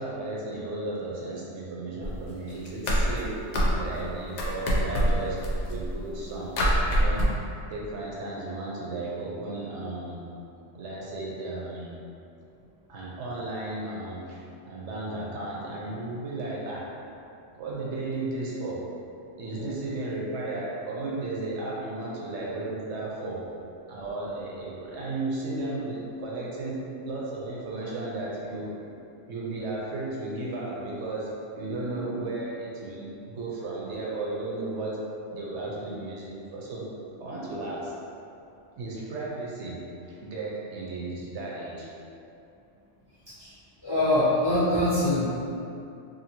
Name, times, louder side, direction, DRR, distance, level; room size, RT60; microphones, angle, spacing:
voice 1, 0.0-3.4 3.7-5.4 5.7-6.5 6.9-7.3 7.7-10.2 10.7-11.9 12.9-16.9 17.5-18.9 19.4-23.5 23.9-28.9 29.3-35.0 35.3-36.9 37.2-37.9 38.8-41.9, right 2 dB, 70° right, -5 dB, 0.9 m, -34 dB
sound 1, 2.0-2.3 2.6-4.1 4.4-6.1 6.6-7.2, equal, 75° left, 0.9 m, -25 dB
voice 2, 43.8-45.3, left 1 dB, 30° left, -12 dB, 0.5 m, -24 dB
2.6 x 2.6 x 2.8 m, 2.7 s
omnidirectional pair, 1.3 m